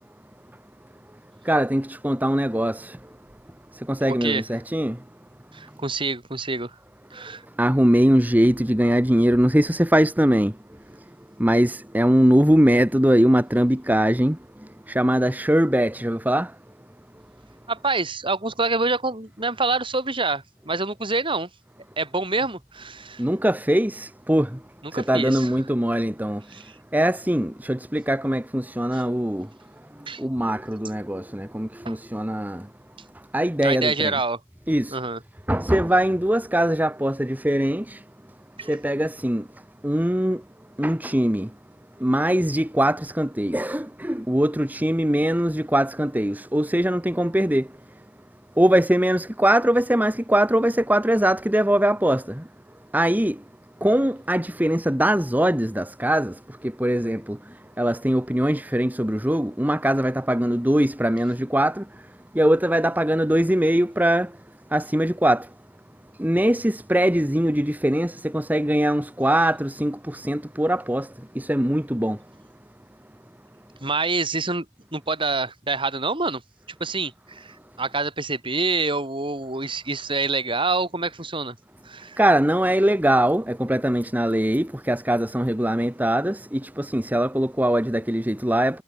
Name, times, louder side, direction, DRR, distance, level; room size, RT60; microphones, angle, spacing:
voice 1, 1.5-3.0 3.9-5.0 7.6-10.5 11.4-14.4 14.9-16.5 23.2-24.5 24.9-26.4 26.9-29.5 30.2-32.6 33.3-34.1 34.7-35.0 35.5-38.0 38.7-39.4 39.8-40.4 40.8-41.5 42.0-47.7 48.6-52.4 52.9-53.3 53.8-56.3 56.8-57.4 57.8-61.8 62.3-64.3 64.7-65.4 66.2-71.1 71.3-72.2 82.2-88.8, right 1 dB, 10° right, 1.3 m, -21 dB
voice 2, 4.1-4.4 5.5-6.8 7.1-7.4 17.7-21.5 22.0-23.2 24.8-25.5 26.5-26.7 28.9-29.0 30.1-30.2 31.8-32.0 33.6-34.4 34.9-35.2 38.6-38.8 73.8-74.7 74.9-76.4 76.8-81.6 81.8-82.2, right 3 dB, 25° right, 4.1 m, -26 dB
head